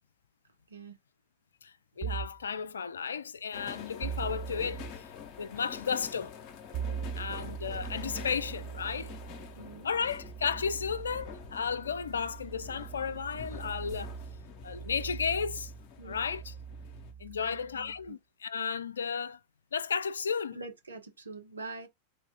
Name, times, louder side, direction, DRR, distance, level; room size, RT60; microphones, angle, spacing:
voice 1, 1.6-5.1 5.4-6.4 7.1-9.1 9.8-14.2 14.6-15.7 16.0-16.5 17.2-19.4 19.7-20.6, left 6 dB, 70° left, 0.3 m, -34 dB
sound 1, 2.0-2.5 4.0-5.0 6.7-18.1, right 8 dB, 35° right, 0.7 m, -41 dB
sound 2, 3.5-17.1, left 7 dB, 40° left, 0.8 m, -47 dB
voice 2, 6.9-7.5 9.6-9.9 16.0-16.3 17.4-18.2 20.5-21.9, right 3 dB, 75° right, 0.9 m, -45 dB
3.9 x 2.3 x 3.4 m
figure-of-eight pair, 90°, 0 cm